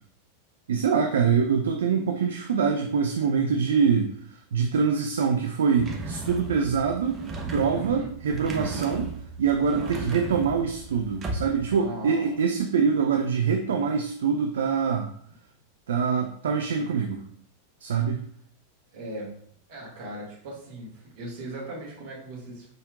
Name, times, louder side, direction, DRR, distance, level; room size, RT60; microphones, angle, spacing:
voice 1, 0.7-7.2 7.5-15.1 15.9-17.2 17.8-18.2, right 6 dB, 60° right, 4 dB, 0.4 m, -24 dB
sound 1, 5.8-11.8, right 3 dB, 25° right, 0.8 m, -35 dB
voice 2, 7.7-8.1 9.7-9.9 11.7-12.4 18.9-19.3 19.7-22.7, right 1 dB, 45° right, -4 dB, 1.9 m, -38 dB
5.1 x 4.2 x 2.4 m, 0.65 s
figure-of-eight pair, 90°, 0 cm